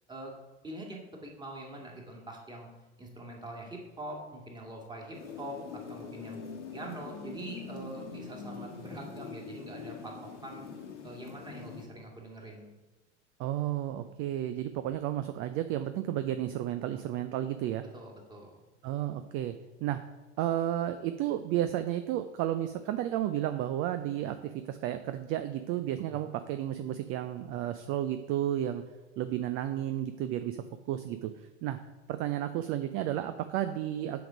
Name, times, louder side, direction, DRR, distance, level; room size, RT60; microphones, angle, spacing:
voice 1, 0.6-2.7 3.0-6.4 6.7-10.7 11.0-12.7 17.9-18.6 26.1-26.2, right 1 dB, 10° right, -1 dB, 2.0 m, -44 dB
sound 1, 5.1-11.9, left 5 dB, 80° left, 1.4 m, -43 dB
voice 2, 13.4-17.8 18.8-19.5 19.8-20.0 20.4-28.8 29.2-31.3 31.6-31.8 32.1-34.2, right 12 dB, 40° right, 10 dB, 0.5 m, -32 dB
7.7 x 5.2 x 5.1 m, 1.1 s
figure-of-eight pair, 85°, 35 cm